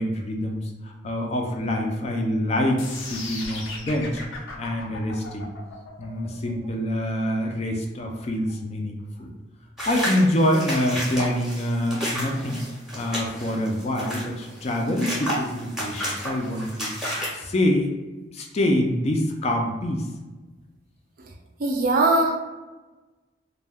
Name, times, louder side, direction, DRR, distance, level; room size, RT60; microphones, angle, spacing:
voice 1, 0.0-4.2 4.6-5.6 6.0-9.3 9.8-12.6 12.9-16.9 17.3-17.9 18.3-20.1, left 1 dB, 35° left, 2 dB, 0.3 m, -25 dB
sound 1, 2.8-8.8, left 3 dB, 90° left, 0.5 m, -38 dB
sound 2, 9.8-17.3, equal, ahead, 0.7 m, -31 dB
voice 2, 21.6-22.4, right 2 dB, 45° right, 3 dB, 0.4 m, -20 dB
2.2 x 2.2 x 3.3 m, 1.2 s
head